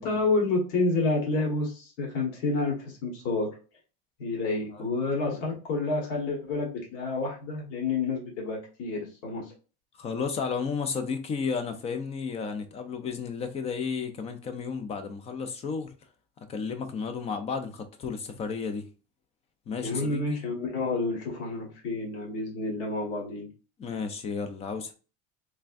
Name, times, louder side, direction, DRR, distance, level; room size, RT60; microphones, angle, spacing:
voice 1, 0.0-3.5 4.2-9.5 19.8-23.5, left 3 dB, 55° left, 1.4 m, -29 dB
voice 2, 10.0-15.9 16.5-18.9 19.7-20.4 23.8-24.9, left 5 dB, 20° left, 0.4 m, -33 dB
3.4 x 3.3 x 2.5 m
cardioid pair, 170°, 30 cm